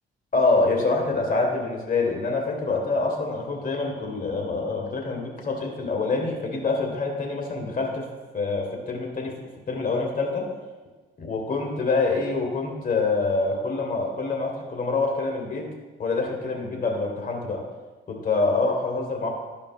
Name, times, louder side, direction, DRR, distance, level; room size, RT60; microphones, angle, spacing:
voice 1, 0.3-8.1 8.3-9.4 9.7-10.5 11.2-15.7 16.0-17.6 18.1-19.3, left 3 dB, 45° left, 1 dB, 1.7 m, -26 dB
12.5 x 5.1 x 2.5 m, 1.3 s
cardioid pair, 90°, 20 cm